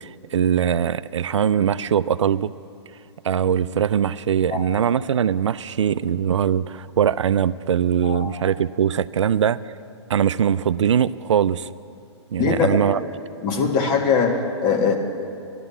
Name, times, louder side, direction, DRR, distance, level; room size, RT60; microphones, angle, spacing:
voice 1, 0.0-2.5 3.2-9.6 10.1-11.7 12.3-13.0, right 8 dB, 85° right, 15 dB, 0.4 m, -21 dB
voice 2, 12.4-12.9 13.4-15.0, left 5 dB, 30° left, 2 dB, 1.7 m, -21 dB
13.5 x 12.0 x 7.0 m, 2.4 s
hypercardioid pair, 135°, 15 cm